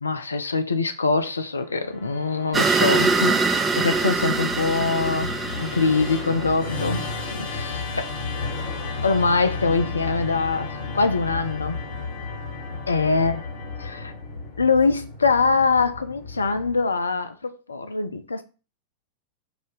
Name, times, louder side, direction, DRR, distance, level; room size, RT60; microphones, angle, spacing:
voice 1, 0.0-8.2 9.0-11.8 12.9-13.4 13.8-14.1 14.6-18.4, left 4 dB, 75° left, 0.4 m, -23 dB
Musical instrument, 1.7-17.0, left 4 dB, 50° left, 1.6 m, -33 dB
sound 1, 2.5-7.1, right 4 dB, 15° right, 0.4 m, -24 dB
4.9 x 2.7 x 3.7 m
figure-of-eight pair, 90°, 0 cm